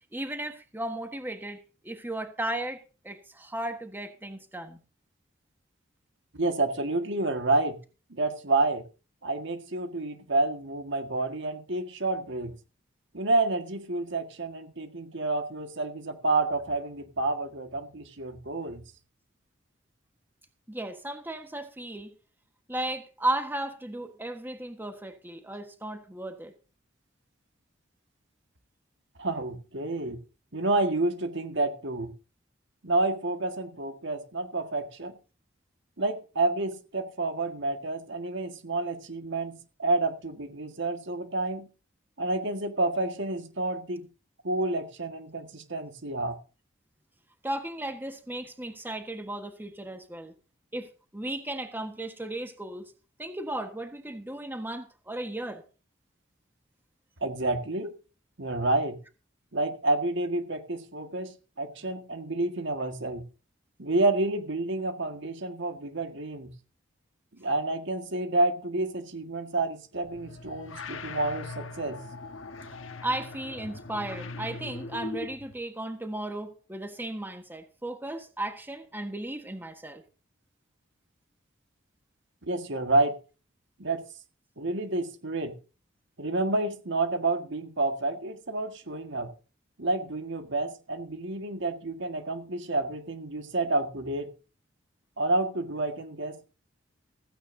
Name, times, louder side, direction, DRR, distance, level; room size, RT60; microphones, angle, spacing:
voice 1, 0.1-4.8 20.7-22.1 22.7-26.5 47.4-50.3 50.7-50.9 51.1-52.9 53.2-55.6 73.0-80.0, right 1 dB, 10° right, 1.5 m, -35 dB
voice 2, 6.3-7.8 8.1-8.8 9.2-12.6 13.1-18.8 29.2-30.2 30.5-32.1 32.8-35.1 36.0-41.7 42.2-44.1 44.4-46.4 57.2-57.9 58.4-59.0 59.5-63.2 63.8-66.5 67.4-72.0 82.4-83.2 83.8-84.0 84.6-85.6 86.2-89.3 89.8-94.3 95.2-96.4, right 2 dB, 65° right, 1.9 m, -29 dB
sound 1, 70.0-75.5, left 3 dB, 75° left, 1.5 m, -40 dB
16.0 x 15.5 x 2.8 m
head